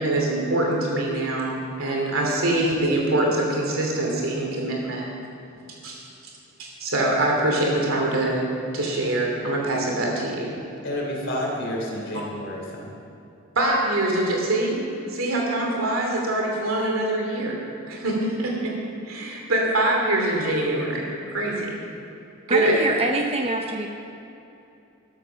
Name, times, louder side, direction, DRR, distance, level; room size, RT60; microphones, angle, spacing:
voice 1, 0.0-5.1 5.8-6.0 6.6-8.5 8.7-10.5 13.6-14.8 15.1-17.6 17.9-18.7 19.1-21.8 22.5-22.8, right 1 dB, 80° right, -1 dB, 2.7 m, -24 dB
voice 2, 10.8-13.0, left 1 dB, 60° left, -2 dB, 3.4 m, -30 dB
voice 3, 22.5-23.9, right 2 dB, 30° right, 2 dB, 0.8 m, -24 dB
13.5 x 13.0 x 5.7 m, 2.7 s
head